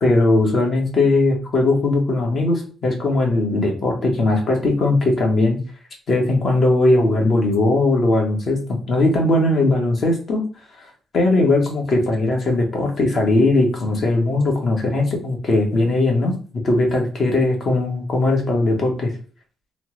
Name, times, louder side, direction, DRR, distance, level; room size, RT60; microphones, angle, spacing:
voice 1, 0.0-5.6 6.1-10.5 11.1-19.1, left 2 dB, 55° left, 1 dB, 1.1 m, -19 dB
3.2 x 2.0 x 3.0 m, 0.40 s
cardioid pair, 90°, 0 cm